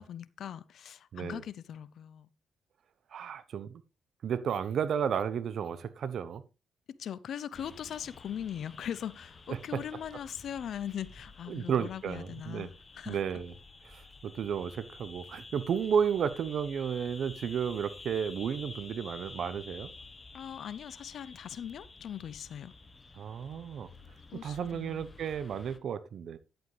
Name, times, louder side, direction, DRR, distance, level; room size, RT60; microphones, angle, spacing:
voice 1, 0.0-2.3 6.9-13.2 20.3-22.7 24.3-25.1, left 9 dB, 70° left, 0.6 m, -40 dB
voice 2, 1.1-1.4 3.1-3.8 4.2-6.4 9.5-9.8 11.5-12.7 13.1-13.5 13.8-19.9 23.2-23.9 24.4-26.4, right 7 dB, 70° right, 0.9 m, -33 dB
sound 1, 7.5-25.8, left 3 dB, 35° left, 1.2 m, -50 dB
10.5 x 8.0 x 3.3 m
cardioid pair, 70°, 0 cm